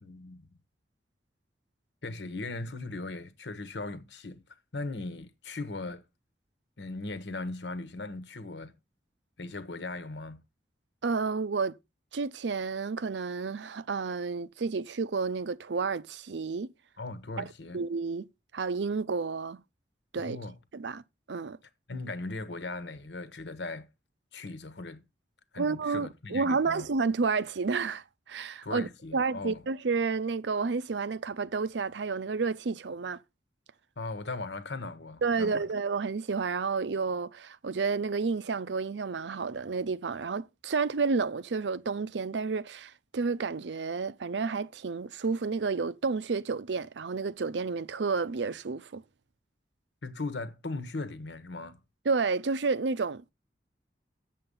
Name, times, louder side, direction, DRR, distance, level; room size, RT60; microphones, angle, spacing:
voice 1, 0.0-0.5 2.0-4.4 4.7-6.0 6.8-8.8 9.4-10.4 17.0-17.8 20.2-20.5 21.9-23.9 24.3-25.0 25.5-26.9 28.6-29.6 34.0-35.7 50.0-51.8, left 3 dB, 80° left, 1.3 m, -38 dB
voice 2, 11.0-11.7 12.1-16.7 17.4-17.5 17.7-18.2 18.5-19.6 20.1-20.4 20.7-21.0 21.3-21.6 25.6-33.2 35.2-49.0 52.1-53.3, right 4 dB, 90° right, 0.6 m, -30 dB
7.7 x 7.6 x 5.5 m
head